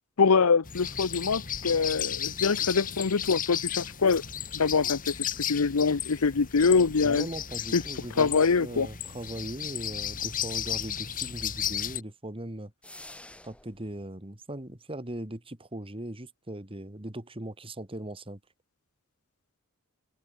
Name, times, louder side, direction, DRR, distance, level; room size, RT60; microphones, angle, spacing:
voice 1, 0.2-4.2 4.5-7.3 7.7-7.8 8.2-8.9, left 5 dB, 85° left, 0.8 m, -24 dB
sound 1, 0.6-12.0, left 9 dB, 40° left, 1.8 m, -34 dB
voice 2, 7.0-12.7 13.4-18.4, right 1 dB, 25° right, 2.2 m, -39 dB
sound 2, 12.8-13.8, left 1 dB, 5° left, 7.5 m, -47 dB
head